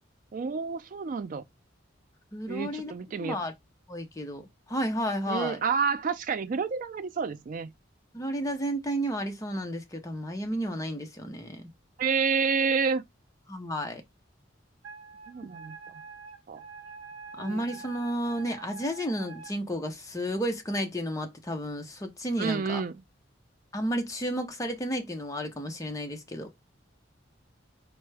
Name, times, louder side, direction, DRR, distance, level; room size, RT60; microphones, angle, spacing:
voice 1, 0.3-1.4 2.5-3.4 5.3-7.7 12.0-13.0 15.3-15.7 16.5-16.6 17.4-17.6 22.4-23.0, right 5 dB, 45° right, 0.3 m, -29 dB
voice 2, 2.3-2.9 3.2-3.5 3.9-5.6 8.1-11.6 13.5-14.0 17.4-22.8 23.7-26.5, equal, 15° left, 0.6 m, -32 dB
Wind instrument woodwind instrument, 14.8-19.6, right 5 dB, 80° right, 0.6 m, -46 dB
4.4 x 2.1 x 3.2 m
head